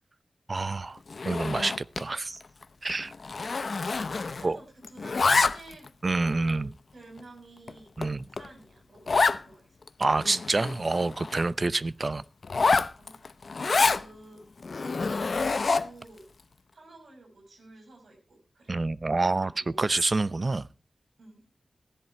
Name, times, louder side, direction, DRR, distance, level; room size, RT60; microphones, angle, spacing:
voice 1, 0.5-1.0 1.3-2.4 2.8-3.1 4.4-4.6 6.0-6.7 8.0-8.2 10.0-12.2 18.7-19.5 19.8-20.7, right 3 dB, 40° right, 0.6 m, -27 dB
Zipper (clothing), 1.1-2.1 2.4-2.6 2.9-4.6 4.8-5.9 6.5-6.6 7.2-7.3 7.7-7.8 8.0-8.1 8.4-8.5 9.1-9.4 9.9-10.0 10.2-11.5 12.4-14.0 14.6-16.0, left 4 dB, 60° left, 0.7 m, -27 dB
voice 2, 4.1-5.9 6.4-8.1 8.4-9.8 13.0-13.2 13.5-14.4 14.7-16.2 16.7-18.8 19.2-19.8 21.2-21.4, right 2 dB, 80° right, 6.4 m, -51 dB
16.0 x 11.0 x 4.5 m
wide cardioid pair, 105°, 0 cm